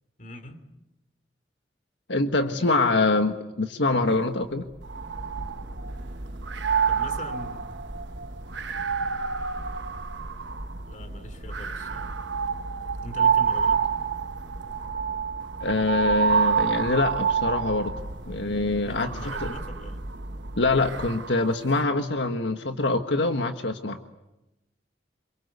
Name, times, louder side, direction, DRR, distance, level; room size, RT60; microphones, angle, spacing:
voice 1, 0.2-0.6 2.5-3.2 6.9-7.7 10.9-12.1 13.0-13.9 18.8-20.0, left 1 dB, 45° left, 10 dB, 3.2 m, -41 dB
voice 2, 2.1-4.6 15.6-17.9 18.2-19.1 19.4-19.5 20.6-24.0, left 2 dB, 85° left, 6 dB, 1.5 m, -24 dB
sound 1, 4.4-21.4, right 1 dB, 50° right, 1.3 m, -40 dB
sound 2, 4.9-6.0 6.4-10.8 11.5-18.2 19.0-21.6, right 6 dB, 90° right, 1.1 m, -28 dB
27.5 x 24.0 x 8.3 m, 0.94 s
head